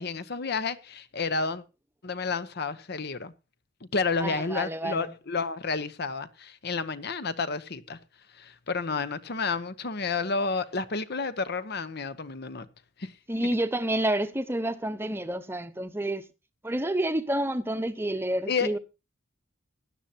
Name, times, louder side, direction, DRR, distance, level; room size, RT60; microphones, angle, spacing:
voice 1, 0.0-1.6 2.0-3.3 3.9-8.0 8.3-12.7 13.0-13.1 18.5-18.8, left 4 dB, 50° left, 0.9 m, -30 dB
voice 2, 4.2-5.1 13.3-16.2 16.6-18.8, right 1 dB, 10° right, 0.9 m, -29 dB
17.0 x 11.5 x 2.9 m
head